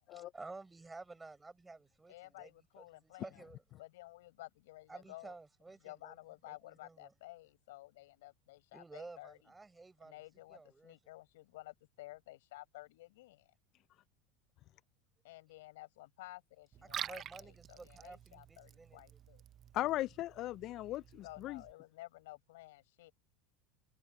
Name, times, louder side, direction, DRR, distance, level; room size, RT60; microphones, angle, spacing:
voice 1, 0.1-2.1 2.4-2.5 2.8-3.6 4.9-6.2 6.5-7.1 8.7-10.2 10.5-10.9 16.8-19.2, right 3 dB, 10° right, 6.3 m, -52 dB
voice 2, 2.1-3.4 3.8-5.4 5.8-9.5 10.0-13.5 15.2-19.4 21.2-23.1, left 18 dB, 80° left, 7.5 m, -53 dB
Liquid, 16.7-21.7, right 10 dB, 35° right, 0.6 m, -48 dB
voice 3, 19.7-21.6, left 15 dB, 50° left, 0.3 m, -37 dB
supercardioid pair, 125°, 0 cm